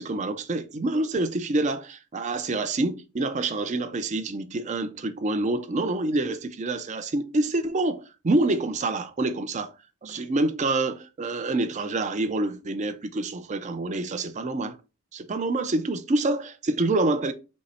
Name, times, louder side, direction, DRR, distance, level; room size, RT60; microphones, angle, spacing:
voice 1, 0.0-9.7 10.0-14.8 15.1-17.3, right 2 dB, 30° right, 0.4 m, -27 dB
5.3 x 2.0 x 4.3 m
head